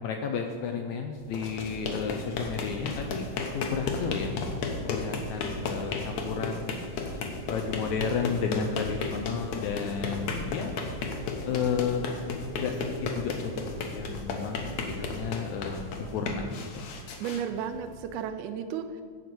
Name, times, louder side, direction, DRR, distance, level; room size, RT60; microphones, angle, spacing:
voice 1, 0.0-3.3 3.5-4.3 4.8-6.8 7.4-10.7 11.4-12.0 12.6-13.5 13.9-16.9, left 6 dB, 85° left, 4 dB, 1.7 m, -32 dB
sound 1, 1.2-18.2, left 3 dB, 65° left, 1.9 m, -34 dB
voice 2, 17.2-19.0, right 8 dB, 80° right, 7 dB, 1.8 m, -33 dB
11.0 x 4.1 x 7.7 m, 2.1 s
omnidirectional pair, 4.0 m